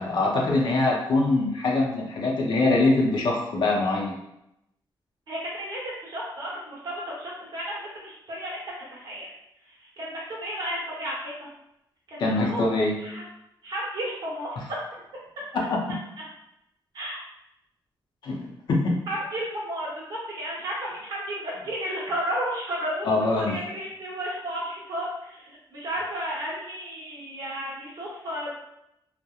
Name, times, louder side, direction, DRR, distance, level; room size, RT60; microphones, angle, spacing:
voice 1, 0.0-4.1 12.2-13.0 15.7-15.8 18.2-18.9 23.1-23.5, left 2 dB, 65° left, -1 dB, 0.6 m, -23 dB
voice 2, 5.3-8.6 8.9-9.3 9.6-11.5 12.1-12.6 13.0-13.2 13.6-14.6 16.9-17.2 19.1-28.5, equal, 55° right, -5 dB, 1.0 m, -33 dB
2.8 x 2.0 x 2.3 m, 0.83 s
wide cardioid pair, 165°, 8 cm